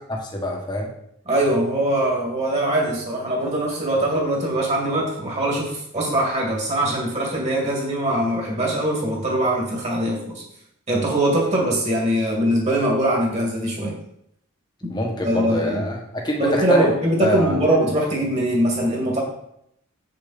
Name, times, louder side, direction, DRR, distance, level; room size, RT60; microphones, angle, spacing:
voice 1, 0.1-0.9 14.9-16.9 17.2-17.7, equal, 20° left, 0 dB, 1.4 m, -25 dB
voice 2, 1.3-10.4 10.9-14.0 14.8-14.9 15.2-15.8 16.4-19.2, right 1 dB, 30° right, -2 dB, 2.2 m, -22 dB
7.8 x 6.8 x 4.2 m, 0.75 s
head